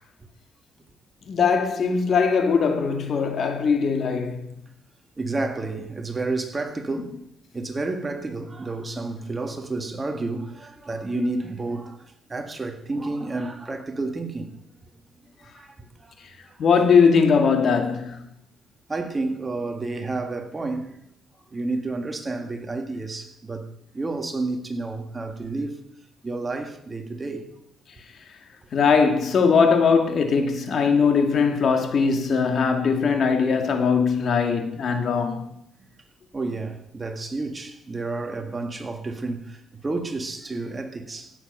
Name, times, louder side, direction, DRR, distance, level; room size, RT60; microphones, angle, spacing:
voice 1, 1.3-4.5 16.6-18.2 28.7-35.4, left 5 dB, 55° left, 2.0 m, -20 dB
voice 2, 5.2-7.2 7.5-14.6 15.4-15.7 16.0-16.1 16.5-16.6 18.0-18.1 18.9-21.0 21.5-23.7 23.9-25.8 26.2-27.5 35.8-35.9 36.3-41.3, right 3 dB, 25° right, 1.8 m, -30 dB
16.5 x 7.3 x 5.4 m
cardioid pair, 90°, 0 cm